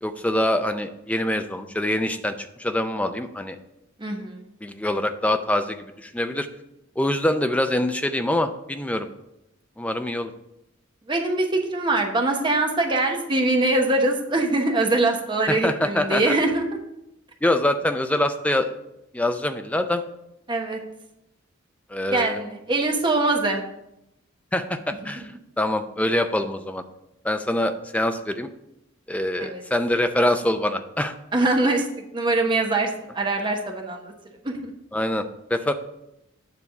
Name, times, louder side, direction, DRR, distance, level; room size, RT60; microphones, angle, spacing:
voice 1, 0.0-3.6 4.6-6.5 7.0-9.1 9.8-10.3 15.5-16.3 17.4-18.8 19.1-20.0 21.9-22.4 24.5-26.8 27.2-28.5 29.1-31.1 34.9-35.7, left 1 dB, 5° left, 7 dB, 0.4 m, -24 dB
voice 2, 4.0-4.5 11.1-16.7 20.5-20.8 22.1-23.6 25.0-25.2 29.4-29.6 31.3-31.9 32.1-34.1 34.4-34.7, right 2 dB, 25° right, 2 dB, 1.0 m, -23 dB
9.5 x 3.5 x 6.9 m, 0.87 s
head